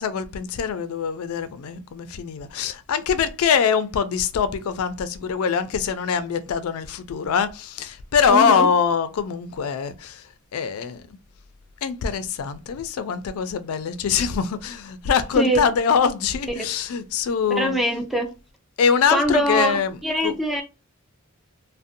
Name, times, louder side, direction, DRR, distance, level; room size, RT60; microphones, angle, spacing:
voice 1, 0.0-10.3 10.5-11.0 11.8-17.8 18.8-20.0 20.2-20.3, left 6 dB, 75° left, 0.4 m, -23 dB
voice 2, 8.3-8.7 15.4-15.6 16.6-16.7 17.6-18.3 19.1-19.8 20.0-20.6, right 1 dB, ahead, 0.4 m, -22 dB
2.5 x 2.1 x 2.6 m
head